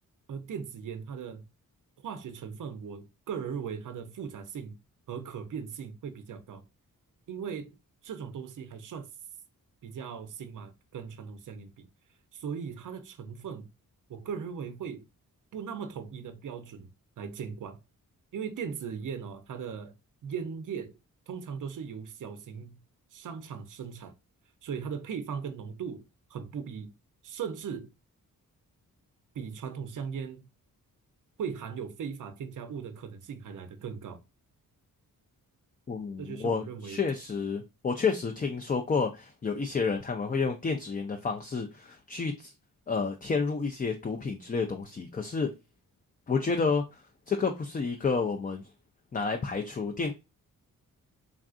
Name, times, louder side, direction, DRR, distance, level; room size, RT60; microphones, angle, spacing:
voice 1, 0.3-1.4 2.0-4.8 5.1-6.6 7.3-7.8 8.0-9.1 9.8-11.9 12.3-13.7 14.1-15.0 15.5-16.9 17.2-17.8 18.3-19.9 20.2-20.9 21.3-22.8 23.1-24.1 24.6-26.0 26.3-26.9 27.2-27.9 29.3-30.5 31.4-34.2 36.2-37.0, right 7 dB, 60° right, 0.6 m, -38 dB
voice 2, 35.9-42.5 42.9-45.5 46.3-48.6 49.1-50.1, left 4 dB, 25° left, 0.4 m, -30 dB
3.6 x 2.5 x 2.4 m
cardioid pair, 75°, 35 cm